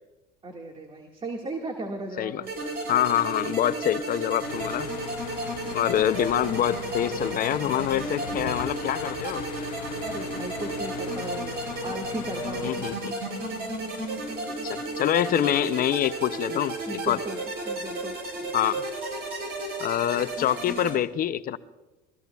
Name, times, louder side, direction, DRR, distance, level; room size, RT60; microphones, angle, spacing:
voice 1, 0.4-2.5 10.0-11.6 11.8-12.9 16.9-17.4 17.7-18.5, right 2 dB, 25° right, 2 dB, 1.8 m, -36 dB
sound 1, 2.4-20.9, right 2 dB, 50° right, 6.7 m, -33 dB
voice 2, 2.9-4.9 5.7-9.5 12.6-13.1 14.6-17.2 18.5-18.8 19.8-21.6, left 11 dB, 45° left, 14 dB, 0.5 m, -26 dB
sound 2, 4.4-13.0, left 12 dB, 85° left, 0.7 m, -40 dB
23.0 x 19.5 x 2.3 m, 1.1 s
supercardioid pair, 85°, 21 cm